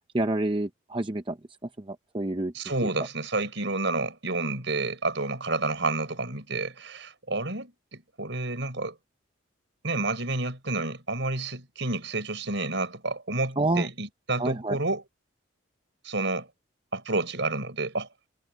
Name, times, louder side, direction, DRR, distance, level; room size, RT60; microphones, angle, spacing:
voice 1, 0.1-1.4 1.9-2.5 13.6-13.9 14.4-14.8, right 2 dB, 25° right, 0.7 m, -27 dB
voice 2, 2.5-9.0 9.8-15.0 16.0-16.5 16.9-18.1, right 2 dB, 65° right, 5.2 m, -30 dB
head